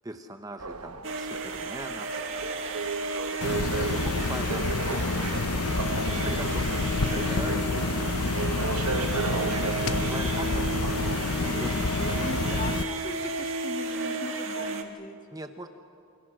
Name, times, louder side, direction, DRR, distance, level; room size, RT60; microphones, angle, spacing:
voice 1, 0.0-2.2 3.6-5.4 6.1-7.9 8.9-11.1 11.5-12.7 15.3-15.7, right 1 dB, 15° right, 6 dB, 1.0 m, -41 dB
sound 1, 0.6-12.2 12.8-12.9, right 5 dB, 85° right, 1.1 m, -36 dB
sound 2, 1.0-14.8, right 3 dB, 60° right, 1.9 m, -33 dB
sound 3, 3.4-12.8, left 3 dB, 85° left, 0.9 m, -28 dB
voice 2, 6.3-6.8 12.2-15.2, left 2 dB, 35° left, 5 dB, 1.8 m, -39 dB
29.0 x 27.0 x 6.3 m, 2.4 s
head